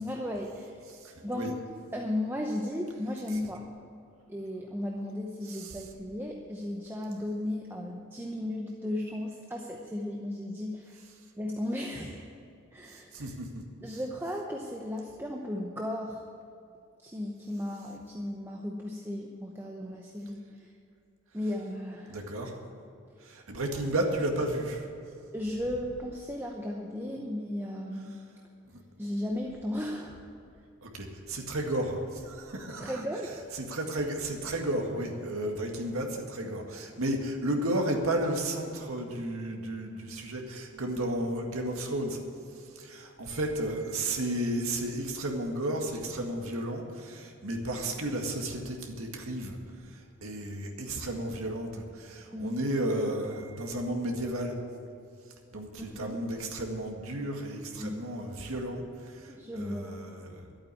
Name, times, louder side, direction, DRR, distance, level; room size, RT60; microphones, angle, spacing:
voice 1, 0.0-0.8 1.2-1.6 1.9-3.7 4.3-11.0 11.4-12.2 12.7-13.3 13.8-16.2 17.0-20.7 21.3-22.2 23.2-23.3 25.3-28.2 29.0-30.2 32.8-33.4 52.3-52.5 55.8-56.2 57.8-58.0 59.3-60.0, left 1 dB, 10° right, 0 dB, 0.8 m, -35 dB
voice 2, 0.9-1.5 5.4-5.9 12.9-13.5 22.1-22.6 23.2-24.9 28.7-28.8 30.8-33.0 33.5-42.2 42.5-54.6 55.5-60.4, right 1 dB, 80° right, 1 dB, 1.9 m, -33 dB
12.0 x 8.7 x 9.7 m, 2.5 s
head